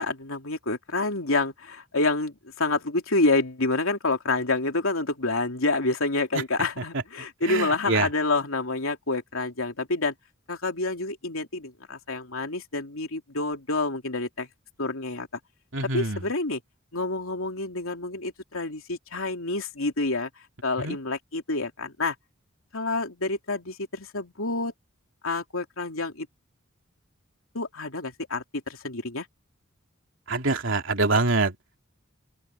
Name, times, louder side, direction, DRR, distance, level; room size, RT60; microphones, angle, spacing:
voice 1, 0.0-10.1 10.5-14.5 14.8-15.3 15.9-16.6 16.9-20.3 20.6-22.1 22.7-24.7 25.2-26.3 27.5-29.3, left 3 dB, 85° left, 3.0 m, -28 dB
voice 2, 7.4-8.1 15.7-16.2 20.8-21.0 30.3-31.6, right 3 dB, 65° right, 3.1 m, -25 dB
open air
head